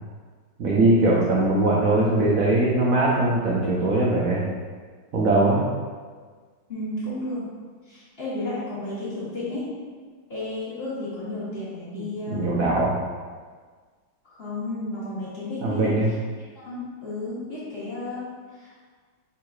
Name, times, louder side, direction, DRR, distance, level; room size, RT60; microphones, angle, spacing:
voice 1, 0.6-4.4 5.1-5.7 11.9-12.9 15.6-16.1, right 2 dB, 80° right, -5 dB, 0.7 m, -21 dB
voice 2, 6.7-7.5 7.8-9.7 10.3-12.5 14.3-16.0 16.5-18.9, left 2 dB, 40° left, -11 dB, 1.0 m, -33 dB
4.6 x 3.6 x 2.3 m, 1.5 s
omnidirectional pair, 2.1 m